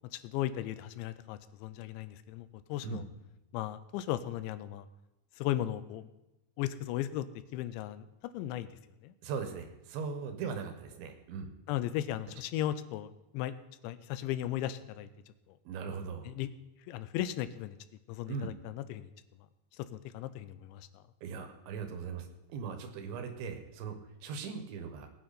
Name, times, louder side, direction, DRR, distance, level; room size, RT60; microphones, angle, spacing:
voice 1, 0.1-3.0 3.5-4.9 5.4-6.1 6.6-7.3 7.5-8.0 8.3-8.7 9.0-9.1 11.7-13.6 13.8-15.1 16.3-16.5 16.9-17.8 18.1-19.1 19.8-20.9, left 13 dB, 90° left, 13 dB, 3.0 m, -36 dB
voice 2, 9.2-11.5 15.7-16.3 18.3-18.5 21.2-24.0 24.2-25.1, right 6 dB, 80° right, 7 dB, 3.6 m, -39 dB
19.5 x 9.2 x 4.2 m, 0.95 s
omnidirectional pair, 5.1 m